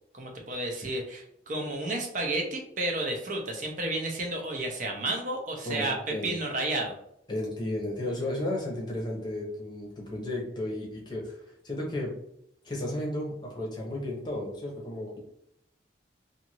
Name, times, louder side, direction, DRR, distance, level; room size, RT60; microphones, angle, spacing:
voice 1, 0.1-6.9, right 2 dB, 40° right, 2 dB, 0.6 m, -31 dB
voice 2, 5.6-6.3 7.3-12.1 12.6-15.2, left 1 dB, 25° left, -2 dB, 0.8 m, -33 dB
2.6 x 2.5 x 2.9 m, 0.74 s
head